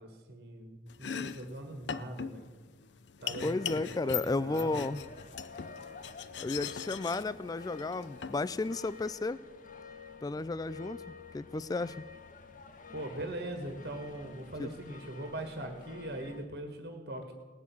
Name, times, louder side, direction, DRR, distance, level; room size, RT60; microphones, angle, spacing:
voice 1, 0.0-2.5 3.2-3.7 4.0-4.8 12.9-17.3, right 1 dB, 65° right, 4 dB, 1.7 m, -41 dB
Domestic sounds home sounds, 0.9-9.1, left 7 dB, 75° left, 0.6 m, -41 dB
sound 1, 3.2-16.5, left 5 dB, 50° left, 0.9 m, -50 dB
voice 2, 3.4-5.0 6.4-9.4 10.2-11.0 11.3-12.0 14.6-14.7, left 3 dB, 20° left, 18 dB, 0.3 m, -33 dB
18.0 x 6.1 x 8.5 m, 1.3 s
head